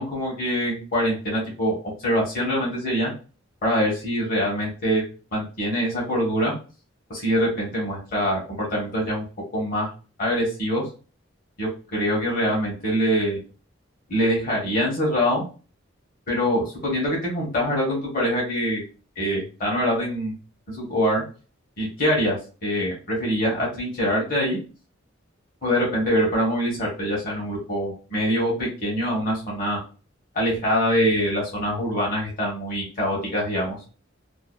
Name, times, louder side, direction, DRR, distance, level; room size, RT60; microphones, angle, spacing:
voice 1, 0.0-1.7 2.0-3.1 3.6-5.0 5.3-6.5 7.1-9.3 9.5-9.9 10.2-10.9 11.6-13.4 14.1-15.4 16.3-18.8 19.2-20.3 20.7-21.2 21.8-22.4 22.6-24.6 25.6-29.8 30.3-33.8, equal, 45° left, -4 dB, 0.9 m, -24 dB
2.6 x 2.2 x 2.2 m, 0.35 s
head